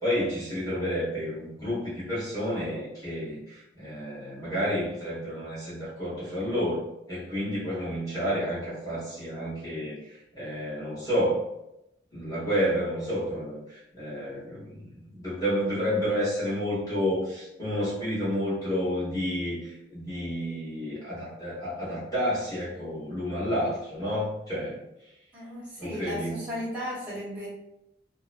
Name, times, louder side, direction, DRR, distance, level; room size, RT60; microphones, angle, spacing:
voice 1, 0.0-11.4 12.1-24.8 25.8-26.4, equal, 20° left, -10 dB, 1.3 m, -30 dB
voice 2, 25.3-27.5, equal, 10° right, -8 dB, 1.1 m, -35 dB
2.9 x 2.1 x 2.5 m, 0.85 s
head